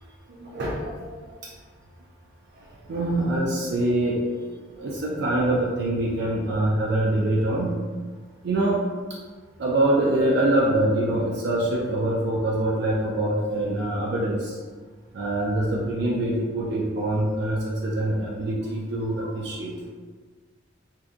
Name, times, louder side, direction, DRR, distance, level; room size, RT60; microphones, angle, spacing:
voice 1, 0.3-1.3 2.6-7.8 8.4-8.8 9.6-14.6 15.1-19.7, right 1 dB, 60° right, -4 dB, 0.4 m, -25 dB
2.7 x 2.2 x 2.4 m, 1.5 s
head